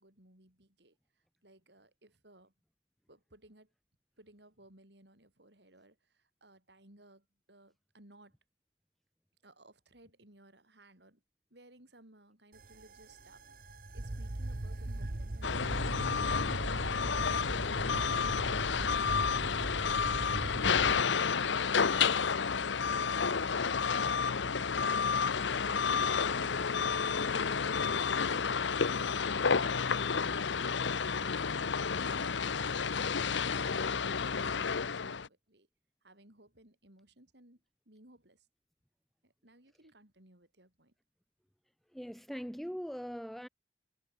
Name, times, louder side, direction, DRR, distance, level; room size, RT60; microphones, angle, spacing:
voice 1, 0.0-2.5 3.1-3.7 4.2-8.4 9.4-11.2 11.5-20.8 21.3-25.1 25.4-29.7 30.1-34.2 34.5-35.7 36.0-38.5 39.2-40.9, right 1 dB, 65° right, 5.2 m, -60 dB
sound 1, 12.5-21.0, right 1 dB, 50° right, 1.1 m, -39 dB
sound 2, 15.4-35.3, left 6 dB, 80° left, 0.8 m, -31 dB
voice 2, 41.9-43.5, equal, ahead, 0.4 m, -41 dB
head